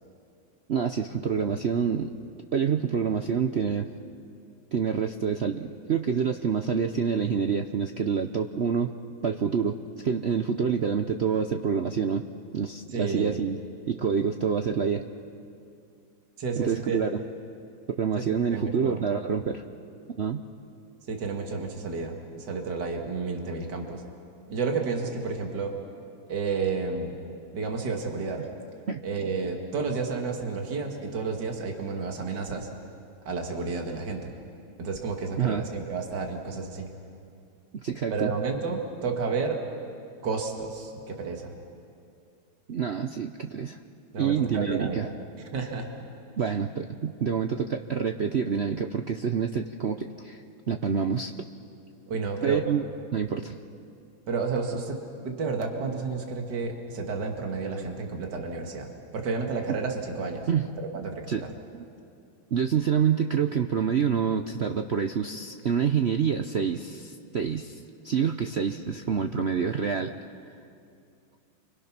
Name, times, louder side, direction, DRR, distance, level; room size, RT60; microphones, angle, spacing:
voice 1, 0.7-2.1 2.5-3.9 4.7-8.9 9.2-9.8 10.0-12.3 12.5-13.6 13.9-15.0 16.6-17.2 17.9-19.6 20.2-20.4 28.9-29.0 35.4-35.6 37.7-38.3 42.7-43.8 44.2-45.1 46.4-51.5 52.4-52.9 53.1-53.6 60.5-60.7 61.3-61.5 61.7-61.8 62.5-70.1, right 7 dB, 75° right, 6 dB, 0.6 m, -27 dB
voice 2, 12.9-13.4 16.4-17.1 18.2-19.0 21.1-24.0 24.5-25.7 26.3-27.1 27.5-28.4 29.0-32.7 33.3-34.3 34.8-36.9 38.1-39.6 40.2-41.5 44.1-45.0 45.5-45.9 52.1-52.6 54.3-55.0 55.2-60.5 60.8-61.4, right 4 dB, 60° right, 2 dB, 2.5 m, -31 dB
29.5 x 25.0 x 6.0 m, 2.5 s
omnidirectional pair, 2.1 m